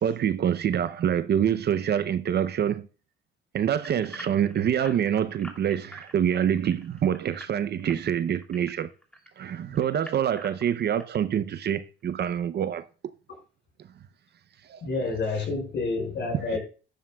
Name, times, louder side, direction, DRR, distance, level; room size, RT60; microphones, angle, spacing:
voice 1, 0.0-2.9 3.5-8.9 9.4-12.9 14.6-14.9 16.3-16.6, right 9 dB, 55° right, 0.6 m, -26 dB
sound 1, 3.8-9.3 9.7-11.2 11.7-11.8 12.3-12.4, equal, 5° left, 3.0 m, -45 dB
voice 2, 14.8-16.6, left 3 dB, 65° left, 5.5 m, -29 dB
14.0 x 11.5 x 2.3 m
cardioid pair, 90°, 20 cm